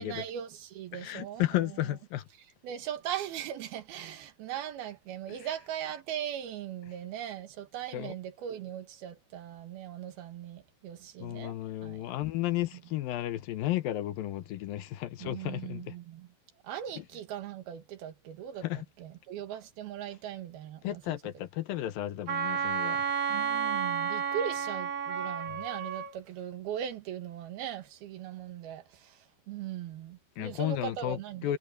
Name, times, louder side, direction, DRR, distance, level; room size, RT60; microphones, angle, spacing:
voice 1, 0.0-2.0 2.4-11.5 11.8-12.1 12.7-12.8 15.2-16.3 16.6-21.2 23.3-31.5, right 10 dB, 85° right, 3.6 m, -39 dB
voice 2, 0.9-2.2 7.9-8.1 11.2-15.8 18.6-18.9 20.8-23.0 30.4-31.6, left 14 dB, 75° left, 2.7 m, -33 dB
Wind instrument woodwind instrument, 22.3-26.1, right 7 dB, 70° right, 4.2 m, -31 dB
omnidirectional pair, 4.3 m